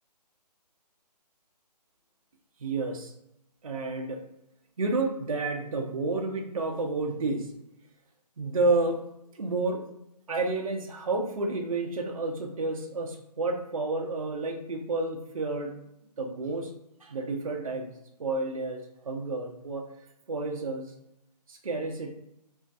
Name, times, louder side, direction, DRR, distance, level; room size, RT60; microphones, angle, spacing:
voice 1, 2.6-3.1 3.6-4.2 4.8-7.5 8.4-9.0 9.3-9.8 10.3-15.7 16.2-16.7 17.0-17.9 18.2-19.9 20.3-20.9 21.5-22.1, right 3 dB, 55° right, 2 dB, 0.5 m, -30 dB
2.4 x 2.1 x 2.5 m, 0.79 s
hypercardioid pair, 175°, 21 cm